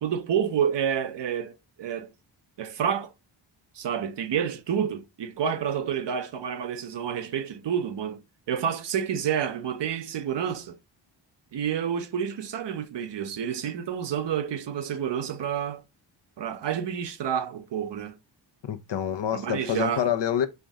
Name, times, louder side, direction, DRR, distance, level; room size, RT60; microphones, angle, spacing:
voice 1, 0.0-2.1 2.6-3.1 3.7-8.2 8.5-10.8 11.5-15.8 16.4-18.2 19.3-20.1, right 8 dB, 60° right, 0.8 m, -29 dB
voice 2, 18.6-20.5, left 9 dB, 60° left, 0.8 m, -27 dB
4.5 x 2.6 x 3.4 m
cardioid pair, 65°, 49 cm